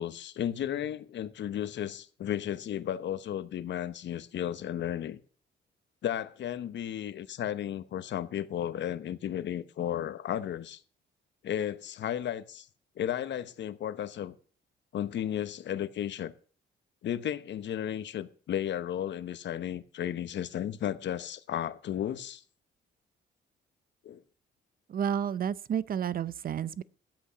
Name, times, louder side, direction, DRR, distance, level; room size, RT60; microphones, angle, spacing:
voice 1, 0.0-5.2 6.0-10.8 11.4-12.7 13.0-14.3 14.9-16.3 17.0-22.4 24.0-24.2, left 10 dB, 65° left, 1.0 m, -34 dB
voice 2, 24.9-26.8, right 8 dB, 45° right, 0.6 m, -31 dB
12.5 x 8.4 x 5.8 m
cardioid pair, 90°, 20 cm